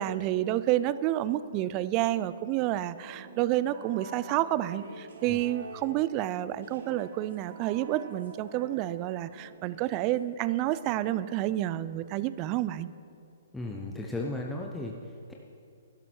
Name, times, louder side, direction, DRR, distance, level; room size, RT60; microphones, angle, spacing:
voice 1, 0.0-12.9, right 14 dB, 35° right, 16 dB, 0.4 m, -29 dB
sound 1, 3.0-10.4, right 3 dB, 70° right, 1.7 m, -47 dB
voice 2, 13.5-15.3, left 2 dB, 5° left, -1 dB, 0.8 m, -36 dB
12.0 x 11.0 x 4.5 m, 2.4 s
hypercardioid pair, 130°, 0 cm